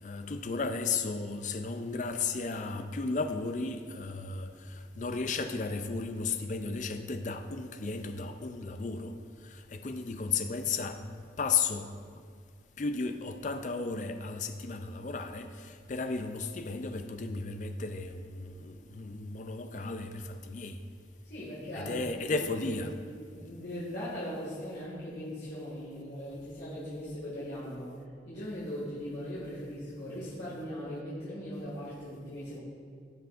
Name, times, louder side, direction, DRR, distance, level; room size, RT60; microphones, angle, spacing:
voice 1, 0.0-9.1 9.4-11.9 12.8-20.8 21.7-22.9, left 4 dB, 45° left, 0.4 m, -34 dB
voice 2, 21.3-21.9 22.4-22.7 23.3-27.9 28.2-32.6, equal, 65° left, 2.0 m, -39 dB
15.0 x 5.9 x 2.5 m
head